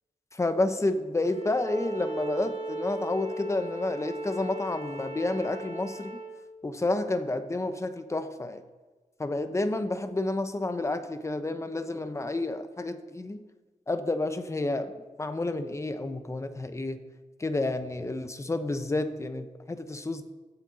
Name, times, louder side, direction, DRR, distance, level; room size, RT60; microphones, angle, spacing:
voice 1, 0.3-6.2 6.6-8.6 9.2-13.4 13.9-17.0 17.4-20.2, left 2 dB, 20° left, 9 dB, 0.8 m, -30 dB
Bowed string instrument, 1.2-6.3, right 2 dB, 50° right, 3.4 m, -37 dB
16.5 x 8.5 x 4.1 m, 1.3 s
wide cardioid pair, 125°, 14 cm